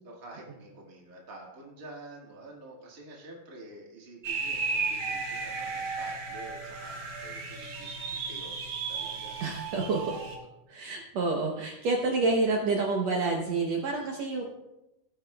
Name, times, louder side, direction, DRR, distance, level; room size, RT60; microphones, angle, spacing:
voice 1, 0.0-8.6 8.9-9.4, right 2 dB, 35° right, -2 dB, 1.5 m, -48 dB
sound 1, 4.2-10.3, right 4 dB, 55° right, 1.3 m, -34 dB
voice 2, 9.4-10.2 10.7-14.4, right 3 dB, 80° right, 0 dB, 1.5 m, -28 dB
17.0 x 8.6 x 2.3 m, 0.93 s
omnidirectional pair, 4.3 m